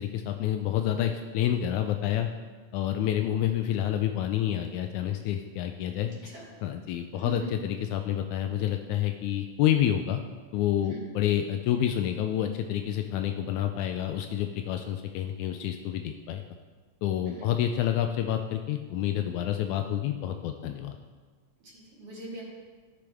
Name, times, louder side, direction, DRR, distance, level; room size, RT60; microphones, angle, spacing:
voice 1, 0.0-2.3 2.7-6.1 6.6-10.2 10.5-16.4 17.0-21.0, left 11 dB, 85° left, 6 dB, 2.0 m, -28 dB
voice 2, 6.0-6.4 7.1-7.3 10.9-11.0 17.3-17.5 21.6-22.4, right 1 dB, 50° right, -5 dB, 3.3 m, -43 dB
16.5 x 6.8 x 3.5 m, 1.4 s
omnidirectional pair, 3.4 m